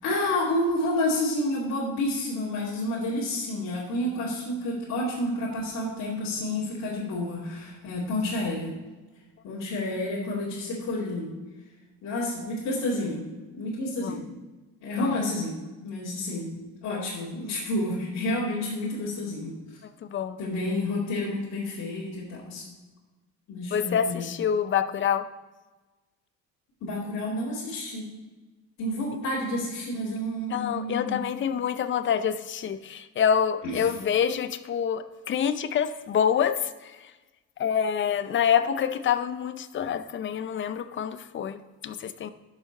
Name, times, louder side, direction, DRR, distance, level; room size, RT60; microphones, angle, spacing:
voice 1, 0.0-8.7 9.4-11.3 12.0-13.2 13.5-14.2 14.8-19.5 20.4-22.6 23.5-24.3 26.8-28.1 28.8-31.3 33.6-33.9, left 1 dB, 65° left, -8 dB, 2.6 m, -30 dB
voice 2, 20.0-20.4 23.7-25.3 30.5-36.9 37.6-42.3, left 8 dB, 40° left, 12 dB, 0.6 m, -27 dB
11.5 x 6.6 x 4.0 m, 1.2 s
cardioid pair, 130°, 30 cm